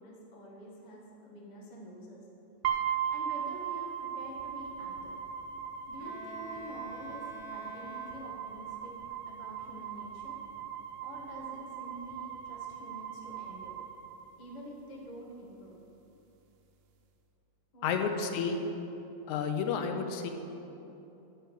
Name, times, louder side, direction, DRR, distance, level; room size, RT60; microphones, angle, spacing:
voice 1, 0.0-2.3 3.1-5.2 5.9-9.0 9.3-10.4 11.0-13.8 14.4-15.8 17.7-18.3, equal, 60° left, -3 dB, 0.4 m, -47 dB
sound 1, 2.6-14.7, right 9 dB, 75° right, 2.1 m, -38 dB
Bowed string instrument, 6.0-8.7, left 2 dB, 40° left, 2.2 m, -48 dB
voice 2, 17.8-18.6 19.3-20.3, left 6 dB, 75° left, 5 dB, 2.0 m, -31 dB
11.0 x 4.9 x 7.6 m, 3.0 s
omnidirectional pair, 3.5 m